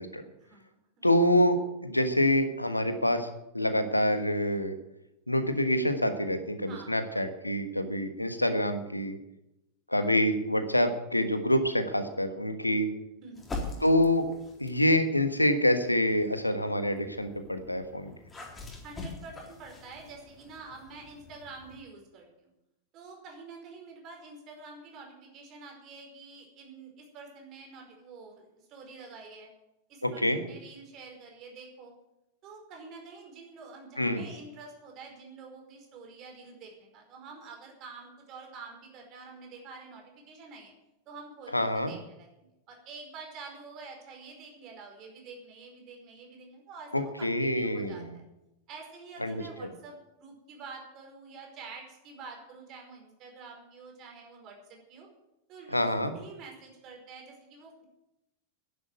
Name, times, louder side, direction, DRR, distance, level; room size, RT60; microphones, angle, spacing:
voice 1, 0.4-1.1 6.7-7.3 10.0-10.1 13.2-13.6 18.8-22.5 22.9-29.5 29.9-31.9 32.4-40.7 41.1-42.3 42.7-48.2 48.7-55.1 55.5-57.8, right 4 dB, 35° right, 2 dB, 4.9 m, -47 dB
voice 2, 1.0-3.3 3.5-4.7 5.3-9.2 9.9-12.9 13.8-14.2 14.6-18.1 30.0-30.4 34.0-34.3 41.5-41.9 46.9-48.2 49.2-49.4 55.7-56.1, left 1 dB, 85° left, 9 dB, 1.4 m, -26 dB
sound 1, 13.3-14.9 15.6-21.8, left 2 dB, 15° left, 3.9 m, -44 dB
11.0 x 10.5 x 9.3 m, 0.90 s
figure-of-eight pair, 90°, 0 cm